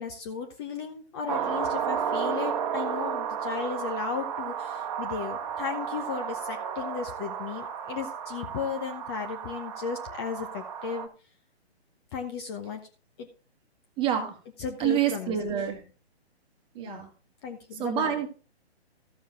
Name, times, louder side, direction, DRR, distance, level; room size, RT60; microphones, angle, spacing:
voice 1, 0.0-11.1 12.1-12.8 13.2-13.3 14.6-15.7 16.8-17.0 17.4-18.2, left 6 dB, 25° left, 5 dB, 1.0 m, -35 dB
sound 1, 1.3-11.1, right 7 dB, 30° right, 1.3 m, -33 dB
voice 2, 14.0-14.3 14.8-15.8 16.7-17.1 17.8-18.3, right 9 dB, 15° right, 5 dB, 1.7 m, -27 dB
13.5 x 7.1 x 3.9 m, 0.35 s
figure-of-eight pair, 135°, 33 cm